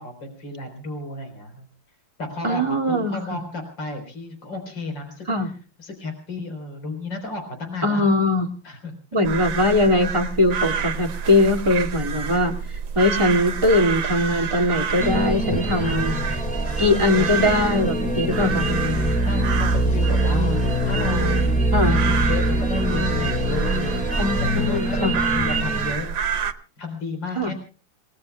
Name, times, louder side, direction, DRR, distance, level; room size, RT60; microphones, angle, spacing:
voice 1, 0.0-1.7 2.2-5.5 5.8-8.1 8.6-8.9 15.8-16.6 17.1-17.4 19.2-20.6 20.8-21.5 21.9-24.0 24.4-26.1 26.8-27.5, left 3 dB, 70° left, 6 dB, 4.8 m, -32 dB
voice 2, 2.4-3.4 5.3-5.5 7.8-8.5 9.1-12.5 12.9-16.1 16.8-19.2 21.7-22.0 24.2-25.2 27.3-27.5, left 1 dB, 15° right, 5 dB, 2.2 m, -21 dB
sound 1, 9.2-26.5, right 6 dB, 90° right, 1.9 m, -29 dB
sound 2, 15.0-25.9, right 1 dB, 5° left, 3.4 m, -23 dB
28.5 x 20.0 x 2.2 m, 0.36 s
omnidirectional pair, 2.0 m